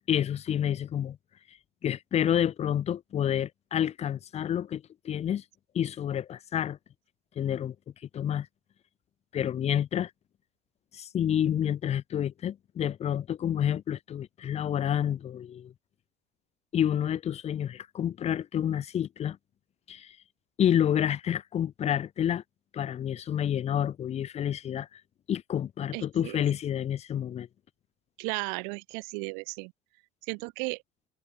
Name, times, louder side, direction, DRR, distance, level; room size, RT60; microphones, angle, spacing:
voice 1, 0.1-1.2 1.8-5.4 5.7-6.8 7.3-7.7 8.1-8.5 9.3-10.1 10.9-15.7 16.7-19.4 19.9-20.2 20.6-22.4 22.7-25.0 25.3-27.5, left 10 dB, 45° left, 1.4 m, -29 dB
voice 2, 25.9-26.4 28.2-29.7 30.3-30.8, right 40 dB or more, 85° right, 0.9 m, -35 dB
open air
cardioid pair, 110°, 16 cm